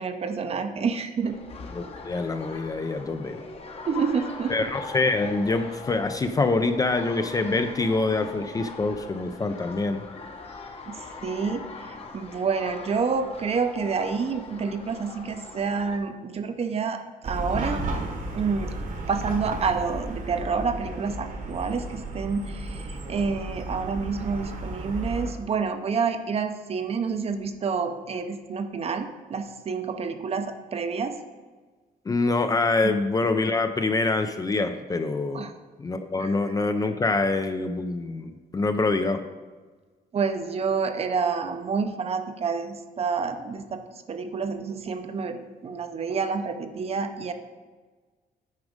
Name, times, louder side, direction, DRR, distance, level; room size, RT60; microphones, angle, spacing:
voice 1, 0.0-1.4 3.9-4.7 10.9-17.8 18.3-18.7 19.1-31.2 32.8-32.9 35.3-35.5 36.2-36.3 40.1-47.3, right 5 dB, 40° right, 8 dB, 0.6 m, -28 dB
sound 1, 1.2-16.0, left 3 dB, 40° left, 0.9 m, -41 dB
voice 2, 1.7-3.4 4.5-10.0 32.1-35.5 35.8-39.2, left 3 dB, 25° left, 8 dB, 0.4 m, -25 dB
Chatter / Car passing by / Traffic noise roadway noise, 17.2-25.3, right 2 dB, 55° right, 1.2 m, -33 dB
9.6 x 5.0 x 5.0 m, 1.4 s
wide cardioid pair, 170°, 16 cm